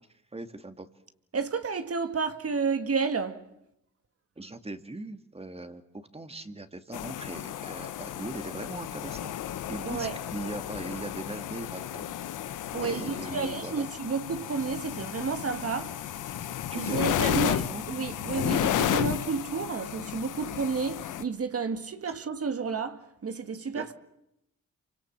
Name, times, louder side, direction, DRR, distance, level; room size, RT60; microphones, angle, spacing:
voice 1, 0.3-0.9 4.4-12.1 12.4-13.9 16.7-17.8 18.3-18.7 23.8-23.9, right 2 dB, 20° right, 2.3 m, -40 dB
voice 2, 1.3-3.5 9.8-10.2 12.7-16.0 16.7-23.9, right 5 dB, 50° right, 1.9 m, -31 dB
sound 1, 6.9-21.2, left 11 dB, 85° left, 1.2 m, -33 dB
28.0 x 25.0 x 7.5 m
cardioid pair, 65°, 30 cm